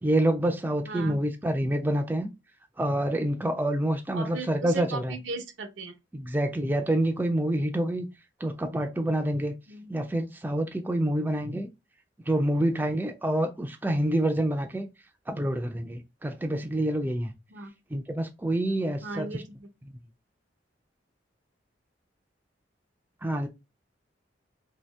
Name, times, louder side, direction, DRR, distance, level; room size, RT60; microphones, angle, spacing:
voice 1, 0.0-2.3 2.8-5.2 6.1-8.1 8.4-9.6 9.9-11.7 12.3-14.9 15.3-17.3 17.9-19.4 23.2-23.5, right 1 dB, 10° right, 0.3 m, -27 dB
voice 2, 0.9-1.2 4.1-5.9 9.7-9.9 17.5-17.7 19.0-19.7, right 3 dB, 85° right, 0.8 m, -37 dB
2.7 x 2.7 x 3.2 m
head